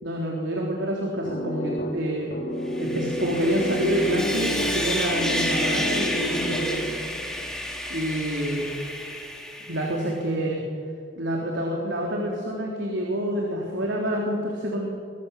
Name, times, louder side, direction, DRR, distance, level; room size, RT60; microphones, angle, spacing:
voice 1, 0.0-2.4 2.8-6.8 7.9-8.6 9.7-10.6 11.2-14.9, equal, 80° right, -2 dB, 3.7 m, -27 dB
sound 1, 1.3-7.2, equal, 50° left, 3.4 m, -30 dB
Sawing, 2.7-10.1, equal, 5° left, 2.8 m, -30 dB
24.0 x 19.0 x 8.4 m, 2.2 s
head